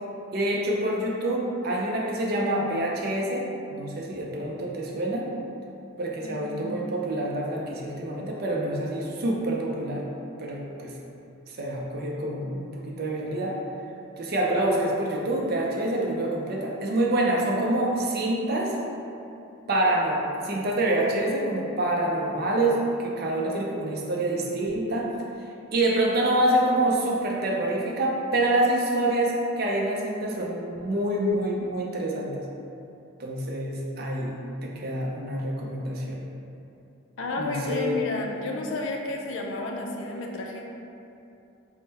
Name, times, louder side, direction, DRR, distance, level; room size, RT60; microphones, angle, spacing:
voice 1, 0.3-3.4 3.7-5.2 6.0-10.0 10.4-10.9 11.5-13.6 14.2-18.7 19.7-25.1 25.7-32.4 33.2-34.4 34.6-36.3 37.4-38.0, right 1 dB, 50° right, -2 dB, 0.5 m, -26 dB
voice 2, 6.2-6.8 37.2-40.7, left 2 dB, 65° left, 0 dB, 0.4 m, -32 dB
3.6 x 2.1 x 4.0 m, 2.7 s
head